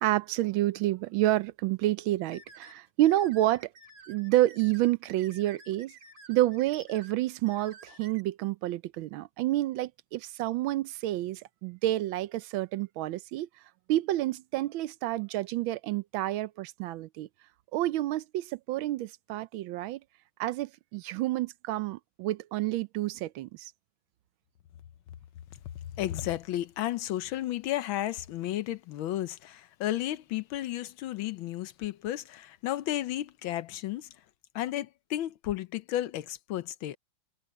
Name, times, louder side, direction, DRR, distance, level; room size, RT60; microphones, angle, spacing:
voice 1, 0.0-3.7 4.1-5.9 6.3-13.5 13.9-17.3 17.7-20.0 20.4-23.7, right 15 dB, 80° right, 1.4 m, -29 dB
sound 1, 2.3-8.2, right 2 dB, 65° right, 4.3 m, -52 dB
voice 2, 26.0-34.1 34.5-37.0, left 13 dB, 80° left, 1.6 m, -33 dB
omnidirectional pair, 2.2 m